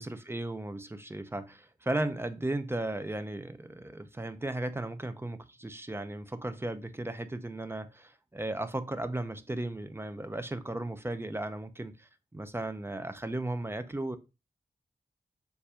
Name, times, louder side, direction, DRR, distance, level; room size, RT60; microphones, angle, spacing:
voice 1, 0.0-14.2, right 1 dB, 15° right, 0.6 m, -36 dB
7.1 x 2.6 x 5.0 m
wide cardioid pair, 105°, 16 cm